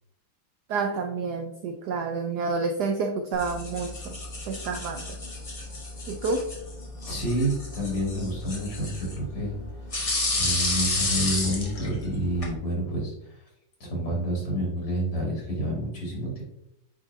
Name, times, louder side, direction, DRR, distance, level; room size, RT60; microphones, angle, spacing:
voice 1, 0.7-4.2 4.5-5.2 6.1-6.5, right 4 dB, 85° right, 5 dB, 0.9 m, -29 dB
sound 1, 3.3-12.5, left 2 dB, 35° left, 0.5 m, -32 dB
voice 2, 7.0-9.5 10.3-13.3 13.8-16.4, equal, 85° left, -2 dB, 3.2 m, -29 dB
8.9 x 4.1 x 2.6 m, 0.83 s
omnidirectional pair, 2.4 m